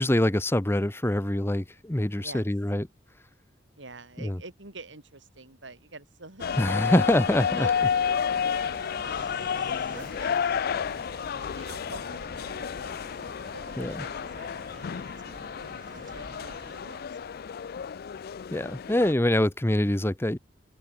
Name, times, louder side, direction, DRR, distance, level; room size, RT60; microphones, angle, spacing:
voice 1, 0.0-2.9 4.2-4.4 6.6-7.7 13.8-13.9 18.5-20.4, left 1 dB, 15° left, 0.8 m, -24 dB
voice 2, 2.2-2.5 3.8-7.0 7.6-10.9 11.4-13.0 13.2-17.4, right 3 dB, 75° right, 3.7 m, -48 dB
sound 1, 6.4-19.1, left 7 dB, 55° left, 0.4 m, -31 dB
sound 2, 6.4-16.8, right 2 dB, 45° right, 3.5 m, -48 dB
open air
head